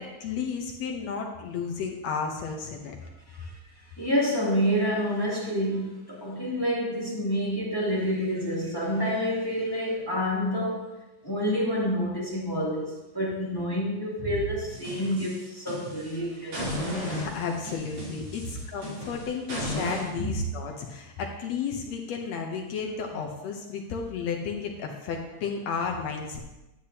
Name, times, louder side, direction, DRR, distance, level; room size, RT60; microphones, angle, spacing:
voice 1, 0.0-3.0 17.1-26.4, left 5 dB, 70° left, 2 dB, 1.9 m, -33 dB
voice 2, 4.0-10.9 11.2-17.3 20.2-20.4, equal, 10° left, -6 dB, 2.0 m, -28 dB
sound 1, 14.7-16.1 16.5-20.1, left 1 dB, 50° right, 4.2 m, -34 dB
10.5 x 10.0 x 2.8 m, 1.0 s
omnidirectional pair, 3.4 m